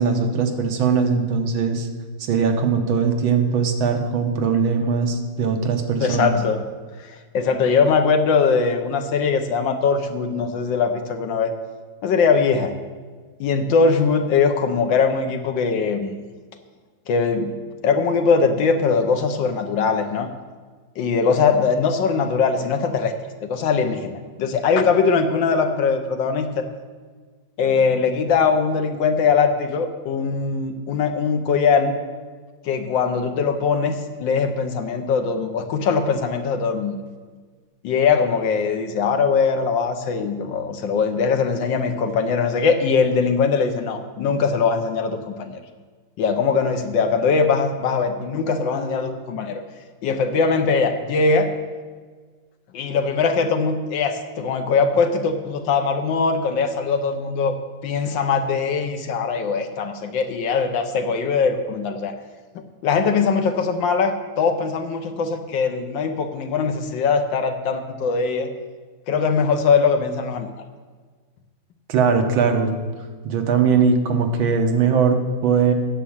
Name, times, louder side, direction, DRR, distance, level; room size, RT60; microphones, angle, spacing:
voice 1, 0.0-1.9 2.2-6.4 71.9-72.8 73.2-75.7, right 5 dB, 85° right, 4 dB, 1.8 m, -20 dB
voice 2, 6.0-6.6 7.0-7.1 7.3-11.5 12.0-12.7 13.4-16.1 17.1-17.6 17.8-20.3 21.0-23.1 23.4-26.7 27.6-32.0 32.6-37.0 37.8-45.6 46.2-49.6 50.0-51.5 52.7-57.5 57.8-62.1 62.5-68.5 69.1-70.5, left 5 dB, 75° left, 7 dB, 1.5 m, -21 dB
9.7 x 7.2 x 7.2 m, 1.5 s
omnidirectional pair, 2.1 m